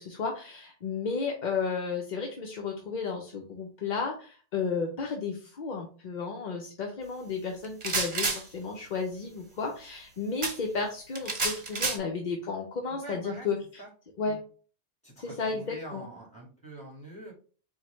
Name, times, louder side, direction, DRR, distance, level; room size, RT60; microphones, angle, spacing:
voice 1, 0.0-13.8 14.2-14.4 15.2-16.0, left 5 dB, 50° left, 1 dB, 0.7 m, -33 dB
sound 1, 7.6-8.4 10.4-10.6 11.1-12.0, right 3 dB, 40° right, 0.9 m, -29 dB
voice 2, 12.9-13.5 13.8-13.9 14.2-14.4 15.0-17.3, right 2 dB, 5° left, -3 dB, 1.9 m, -44 dB
4.5 x 2.2 x 4.4 m, 0.40 s
omnidirectional pair, 1.1 m